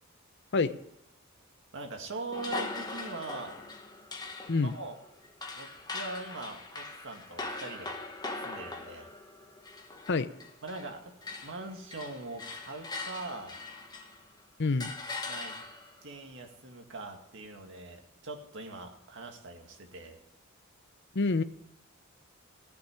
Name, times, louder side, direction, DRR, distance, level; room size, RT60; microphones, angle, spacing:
voice 1, 1.7-3.6 4.6-5.0 5.5-8.0 8.4-9.1 10.6-11.1 11.4-13.6 15.2-15.6 16.0-20.2, right 2 dB, 60° right, 4 dB, 2.0 m, -42 dB
sound 1, 2.3-10.9 11.2-14.3 14.8-16.0, left 3 dB, 20° left, 1.2 m, -41 dB
voice 2, 14.6-14.9 21.1-21.4, left 3 dB, 55° left, 12 dB, 0.7 m, -27 dB
15.0 x 6.0 x 10.0 m, 0.80 s
head